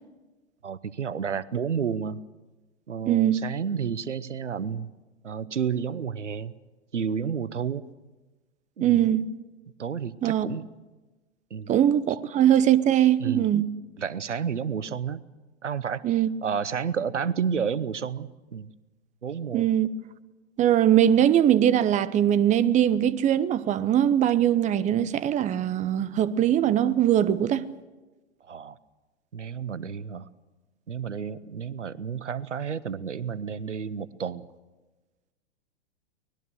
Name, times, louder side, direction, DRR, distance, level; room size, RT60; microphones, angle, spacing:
voice 1, 0.6-2.2 2.9-4.9 5.2-6.5 6.9-7.8 8.8-9.1 9.8-10.7 11.5-11.8 13.2-13.5 14.0-15.2 15.6-18.7 19.2-19.7 28.4-28.8 29.3-30.3 30.9-34.5, right 7 dB, 90° right, 0.9 m, -31 dB
voice 2, 3.1-3.4 8.8-9.3 10.2-10.5 11.7-13.7 16.0-16.3 19.5-19.9 20.6-27.6, right 11 dB, 20° right, 0.8 m, -21 dB
24.0 x 20.0 x 6.3 m
figure-of-eight pair, 105°, 35 cm